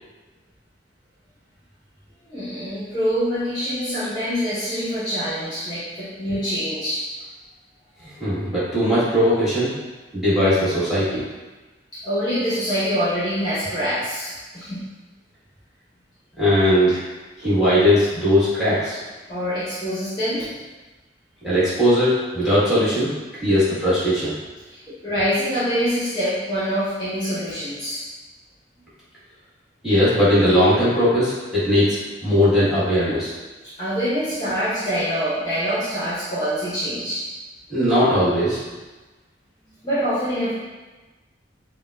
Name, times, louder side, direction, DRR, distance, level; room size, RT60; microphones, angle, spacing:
voice 1, 2.3-7.0 8.0-8.1 11.9-14.8 19.3-20.5 24.7-28.1 33.8-37.3 39.8-40.5, equal, 25° left, -12 dB, 0.9 m, -25 dB
voice 2, 8.2-9.7 10.1-11.2 16.4-17.0 17.4-19.0 21.4-23.1 23.4-24.4 29.8-33.3 37.7-38.6, equal, ahead, -11 dB, 1.4 m, -19 dB
5.2 x 2.1 x 2.3 m, 1.2 s
head